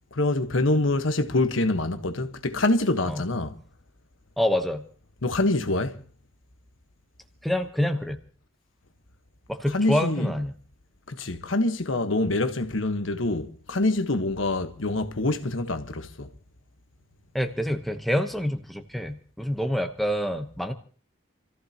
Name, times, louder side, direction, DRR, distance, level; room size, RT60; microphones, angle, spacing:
voice 1, 0.1-3.5 5.2-5.9 9.7-10.3 11.1-16.3, left 2 dB, 85° left, 1.3 m, -25 dB
voice 2, 4.4-4.8 7.4-8.2 9.5-10.5 17.3-20.7, equal, ahead, 1.0 m, -27 dB
28.0 x 14.5 x 2.9 m
head